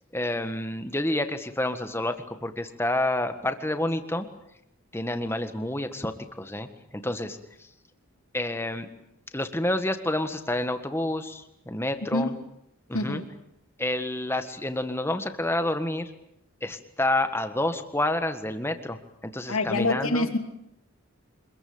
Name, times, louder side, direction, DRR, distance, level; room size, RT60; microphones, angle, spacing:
voice 1, 0.1-4.3 4.9-6.7 6.9-7.7 8.3-8.9 9.3-12.3 12.9-13.2 13.8-16.1 16.6-20.3, left 1 dB, 10° left, 8 dB, 1.6 m, -29 dB
voice 2, 12.9-13.3 19.5-20.4, left 2 dB, 75° left, 6 dB, 3.0 m, -26 dB
26.0 x 21.5 x 8.7 m, 0.79 s
head